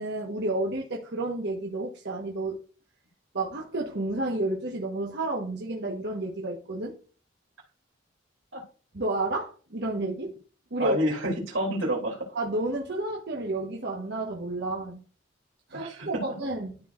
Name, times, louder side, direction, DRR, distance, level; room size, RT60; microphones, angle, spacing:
voice 1, 0.0-2.6 3.3-6.9 8.9-10.3 10.7-11.0 12.3-15.0 15.7-16.7, right 2 dB, 60° right, 1.4 m, -31 dB
voice 2, 10.8-12.3 15.7-16.2, equal, 85° right, 3.0 m, -28 dB
13.0 x 4.6 x 2.6 m
head